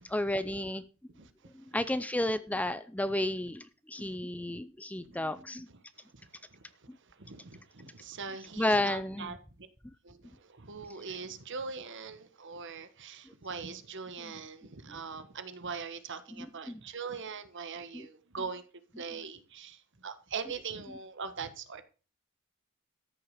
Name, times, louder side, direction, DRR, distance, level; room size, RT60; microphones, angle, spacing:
voice 1, 0.1-0.8 1.5-5.7 8.6-9.3 16.4-16.8 17.9-18.1, left 1 dB, 5° left, 14 dB, 0.5 m, -32 dB
voice 2, 1.1-1.8 3.9-4.2 5.0-5.2 5.7-9.7 10.0-18.6 18.9-21.8, right 5 dB, 55° right, 10 dB, 1.4 m, -42 dB
13.5 x 6.8 x 6.6 m, 0.36 s
head